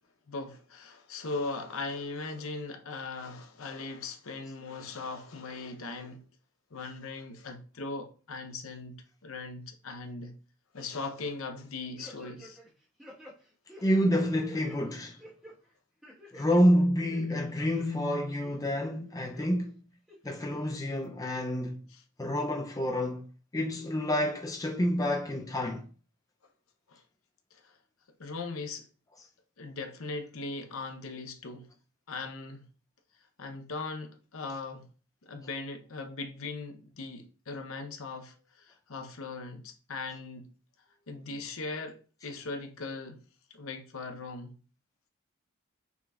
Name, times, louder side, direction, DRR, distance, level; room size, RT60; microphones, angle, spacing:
voice 1, 0.3-6.3 6.7-10.4 10.7-12.6 21.9-22.0 26.9-27.0 27.5-27.8 28.2-28.9 29.6-31.7 32.1-32.7 33.4-34.9 35.2-40.5 41.1-43.2 43.5-44.5, left 3 dB, 70° left, 0.8 m, -39 dB
sound 1, 12.0-12.7 13.0-14.8 15.2-15.5 16.0-16.6 17.0-17.8 18.3-18.9 19.3-19.5 20.1-20.6 21.0-21.1, equal, ahead, 1.3 m, -50 dB
voice 2, 13.8-15.2 16.3-19.8 20.2-21.8 22.2-23.3 23.5-25.9, equal, 15° left, 0.4 m, -28 dB
5.8 x 3.8 x 2.4 m
head